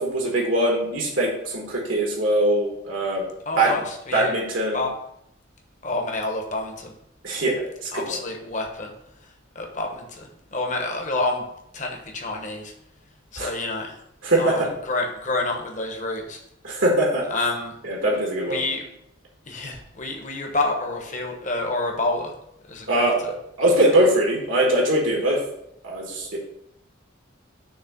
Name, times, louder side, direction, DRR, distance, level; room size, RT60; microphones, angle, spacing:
voice 1, 0.0-3.2 3.5-3.7 4.1-4.8 7.2-7.5 7.8-8.0 13.4-13.5 14.2-14.7 16.6-17.2 17.8-18.6 22.9-23.2 23.6-25.4 25.8-26.4, right 1 dB, 75° right, -2 dB, 1.4 m, -21 dB
voice 2, 3.5-4.3 4.7-4.9 5.8-6.9 7.9-8.9 9.5-11.4 11.7-12.7 13.3-13.9 14.4-16.4 17.3-17.8 18.5-18.8 19.5-22.3 22.7-23.3, left 2 dB, 35° left, 2 dB, 1.0 m, -28 dB
6.4 x 3.2 x 5.8 m, 0.78 s
head